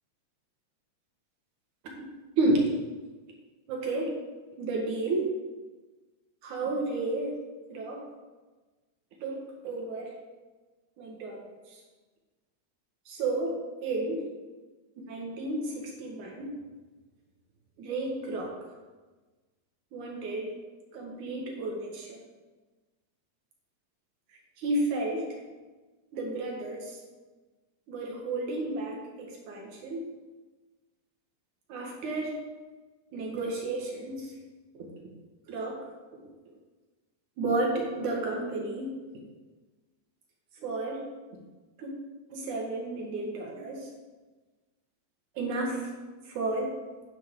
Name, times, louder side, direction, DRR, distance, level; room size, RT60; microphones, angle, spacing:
voice 1, 2.4-2.7 3.7-4.2 4.6-5.3 6.4-7.4 7.7-8.0 9.2-10.2 11.0-11.8 13.1-14.3 15.1-16.5 17.8-18.5 19.9-20.5 20.9-22.2 24.6-25.4 26.1-27.0 27.9-30.1 31.7-32.4 33.1-34.3 34.7-34.9 35.5-35.8 37.4-39.0 40.6-41.0 41.8-41.9 42.3-43.9 45.4-45.9 46.3-46.7, right 2 dB, 90° right, -1 dB, 3.3 m, -32 dB
9.6 x 9.5 x 3.9 m, 1.3 s
omnidirectional pair, 3.3 m